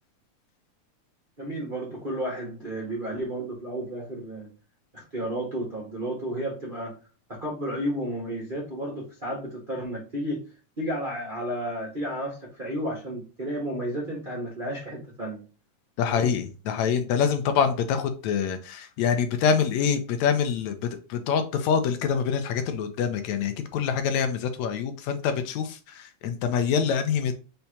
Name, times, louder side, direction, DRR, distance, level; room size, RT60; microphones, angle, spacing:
voice 1, 1.4-4.5 4.9-6.9 7.3-10.4 10.8-15.4 16.0-16.3, right 1 dB, 80° right, 0.4 m, -32 dB
voice 2, 16.0-27.3, left 7 dB, 75° left, 1.9 m, -25 dB
5.7 x 3.4 x 2.7 m
omnidirectional pair, 3.4 m